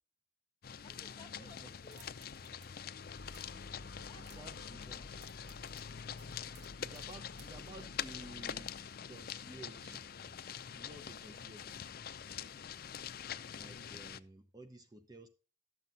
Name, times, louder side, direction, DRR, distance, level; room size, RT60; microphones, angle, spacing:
sound 1, 0.6-14.2, left 8 dB, 50° left, 0.5 m, -45 dB
voice 1, 0.8-2.1 2.4-3.0 4.1-4.7 5.1-5.5, left 3 dB, 25° left, 1.6 m, -60 dB
voice 2, 1.4-1.7 4.2-5.0 6.6-8.7 9.1-10.3 10.8-11.9 13.5-15.3, right 2 dB, 20° right, 0.8 m, -53 dB
sound 2, 1.8-2.7 2.9-3.6 4.0-4.6 4.9-7.7, right 4 dB, 65° right, 2.8 m, -62 dB
Gull seagull, 3.1-9.0, left 2 dB, 75° left, 0.8 m, -54 dB
12.5 x 7.6 x 4.0 m
head